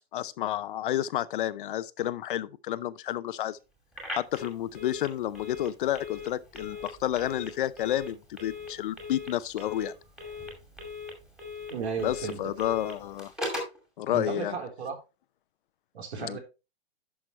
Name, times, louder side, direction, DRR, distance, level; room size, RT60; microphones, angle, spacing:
voice 1, 0.1-3.6 4.1-9.9 12.0-13.3 14.0-14.6 16.2-16.4, left 12 dB, 55° left, 0.6 m, -30 dB
Telephone, 3.9-13.8, left 2 dB, ahead, 2.2 m, -40 dB
voice 2, 11.7-12.4 14.1-15.0 15.9-16.4, right 5 dB, 90° right, 4.1 m, -34 dB
11.0 x 6.1 x 3.2 m
hypercardioid pair, 165°, 32 cm